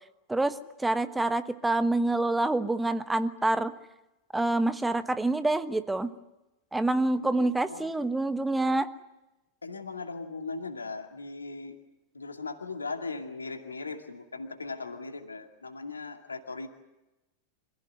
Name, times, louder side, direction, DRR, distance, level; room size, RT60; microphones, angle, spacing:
voice 1, 0.3-3.7 4.3-6.1 6.7-8.9, right 2 dB, 5° right, 11 dB, 1.2 m, -27 dB
voice 2, 7.2-7.9 9.6-11.8 12.1-16.7, left 3 dB, 75° left, 5 dB, 2.3 m, -38 dB
26.5 x 16.5 x 9.7 m, 0.99 s
figure-of-eight pair, 90°, 0 cm